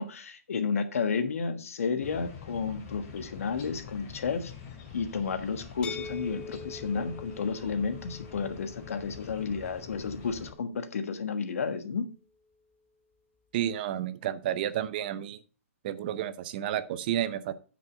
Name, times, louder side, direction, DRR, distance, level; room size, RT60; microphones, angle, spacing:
voice 1, 0.0-4.5 4.9-12.1, left 5 dB, 65° left, 10 dB, 1.4 m, -32 dB
sound 1, 2.0-10.5, left 7 dB, 30° left, 2.6 m, -46 dB
sound 2, 5.8-11.6, left 4 dB, 10° left, 0.5 m, -46 dB
voice 2, 13.5-15.4 15.8-17.5, right 11 dB, 35° right, 14 dB, 0.7 m, -31 dB
9.5 x 5.3 x 5.2 m, 0.35 s
hypercardioid pair, 150°, 8 cm